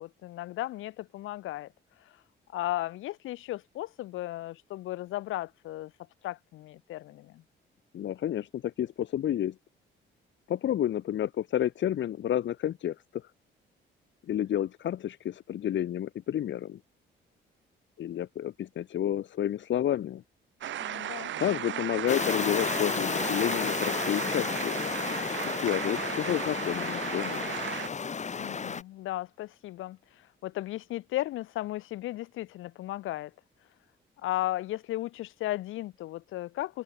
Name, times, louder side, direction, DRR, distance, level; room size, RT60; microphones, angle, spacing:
voice 1, 0.0-1.7 2.0-2.2 2.5-5.9 6.2-7.4 20.8-21.8 28.4-33.3 34.2-36.8, left 16 dB, 85° left, 1.6 m, -35 dB
voice 2, 7.9-9.5 10.5-13.2 14.3-16.8 18.0-20.2 21.4-24.8 25.5-27.5, left 11 dB, 70° left, 2.4 m, -30 dB
sound 1, 20.6-27.9, right 11 dB, 70° right, 3.6 m, -36 dB
sound 2, 22.1-28.8, left 6 dB, 35° left, 1.9 m, -32 dB
cardioid pair, 90°, 20 cm